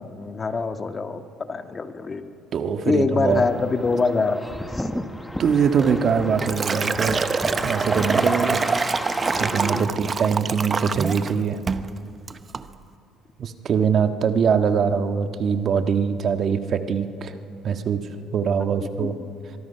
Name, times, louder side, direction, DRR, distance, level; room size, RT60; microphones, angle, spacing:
voice 1, 0.0-2.2 2.8-4.9 18.4-18.7 19.0-19.3, left 4 dB, 35° left, 8 dB, 1.7 m, -25 dB
voice 2, 2.5-3.4 5.4-8.6 8.9-11.6 13.4-17.4 17.6-18.0 18.3-19.1, right 6 dB, 50° right, 8 dB, 1.5 m, -23 dB
sound 1, 3.3-9.9, left 1 dB, 5° left, 1.4 m, -32 dB
Liquid, 5.8-11.3 11.7-11.9 12.3-12.6, right 5 dB, 35° right, 0.9 m, -26 dB
23.5 x 23.5 x 5.8 m, 2.5 s
supercardioid pair, 80°, 0 cm